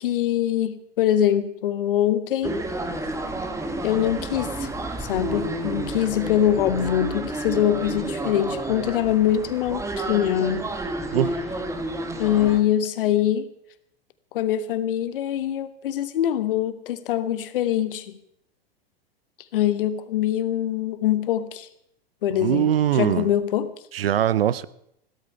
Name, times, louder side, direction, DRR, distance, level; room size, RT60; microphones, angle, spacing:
voice 1, 0.0-2.6 3.8-4.7 5.0-10.7 12.2-13.5 14.3-18.2 19.5-21.7 22.2-23.7, left 11 dB, 60° left, 1.3 m, -23 dB
sound 1, 2.4-12.6, right 2 dB, 10° right, 1.5 m, -30 dB
voice 2, 22.3-23.3 23.9-24.7, right 10 dB, 70° right, 0.7 m, -22 dB
15.5 x 13.0 x 5.7 m
figure-of-eight pair, 95°, 31 cm